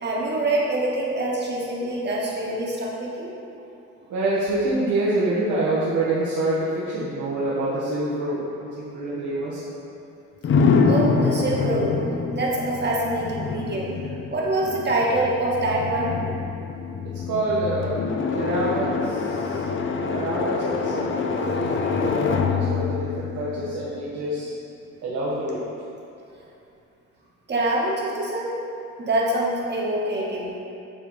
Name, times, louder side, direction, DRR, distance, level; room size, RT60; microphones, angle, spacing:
voice 1, 0.0-3.3 10.8-12.0 12.3-13.9 14.3-16.1 27.5-28.6 29.0-30.5, right 1 dB, 35° right, -4 dB, 1.4 m, -25 dB
voice 2, 4.1-9.6 17.3-17.9 18.3-19.6 20.1-24.5 25.0-25.6, right 2 dB, 75° right, -8 dB, 1.2 m, -26 dB
sound 1, 10.4-24.3, left 5 dB, 45° left, 0.5 m, -25 dB
8.7 x 3.3 x 4.0 m, 2.6 s
cardioid pair, 90°, 30 cm